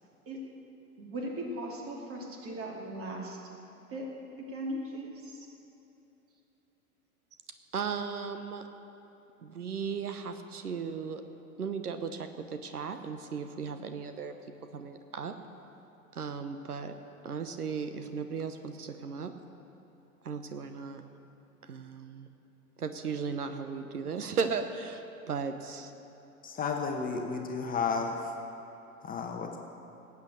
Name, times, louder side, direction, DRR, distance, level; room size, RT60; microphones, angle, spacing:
voice 1, 1.0-3.4 3.9-4.1 4.5-5.1, right 1 dB, 30° right, 0 dB, 2.7 m, -38 dB
voice 2, 7.7-8.7 9.4-11.2 11.6-14.4 14.7-15.3 16.1-17.0 17.2-19.3 20.2-21.0 21.6-22.3 22.8-25.9, right 5 dB, 75° right, 8 dB, 1.0 m, -36 dB
voice 3, 26.4-28.3 29.0-29.6, left 5 dB, 20° left, 2 dB, 1.1 m, -32 dB
18.5 x 8.4 x 6.7 m, 2.9 s
figure-of-eight pair, 95°, 45 cm